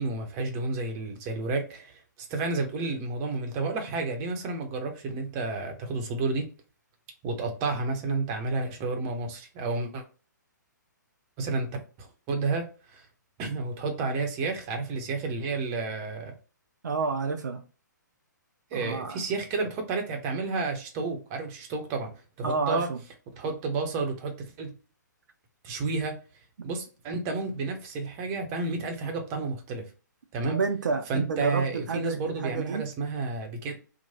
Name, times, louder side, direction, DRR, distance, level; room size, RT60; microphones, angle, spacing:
voice 1, 0.0-2.0 2.3-6.5 7.2-10.0 11.4-12.6 12.9-13.1 13.4-16.3 18.7-22.1 22.4-22.9 23.3-24.7 25.6-26.1 26.6-29.9 30.3-30.6 31.1-33.8, right 3 dB, 25° right, 0.7 m, -31 dB
voice 2, 16.8-17.6 18.7-19.2 22.4-23.0 30.4-32.8, right 4 dB, 70° right, 0.4 m, -29 dB
3.0 x 2.1 x 2.7 m
figure-of-eight pair, 125°, 10 cm